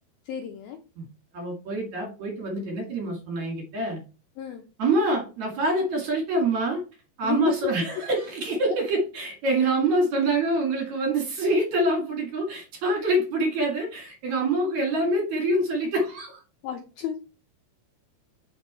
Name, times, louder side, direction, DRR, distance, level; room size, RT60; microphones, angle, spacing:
voice 1, 0.3-0.8 4.4-4.6 7.2-7.7 16.6-17.3, left 9 dB, 75° left, 4 dB, 2.2 m, -31 dB
voice 2, 1.3-4.0 4.8-6.8 7.2-16.4, right 2 dB, 50° right, 0 dB, 3.1 m, -25 dB
7.1 x 6.1 x 4.3 m, 0.33 s
omnidirectional pair, 5.1 m